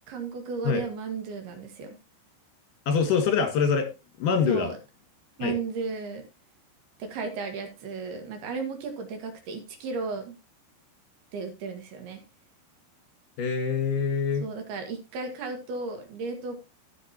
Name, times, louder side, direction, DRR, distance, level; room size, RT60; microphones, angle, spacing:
voice 1, 0.1-1.9 4.5-4.8 5.4-6.2 7.0-10.4 11.3-12.2 14.4-16.6, right 4 dB, 60° right, 5 dB, 3.3 m, -34 dB
voice 2, 2.9-3.9 4.2-4.7 5.4-5.6 13.4-14.5, left 6 dB, 60° left, 6 dB, 2.5 m, -24 dB
16.5 x 6.5 x 2.9 m, 0.27 s
omnidirectional pair, 5.9 m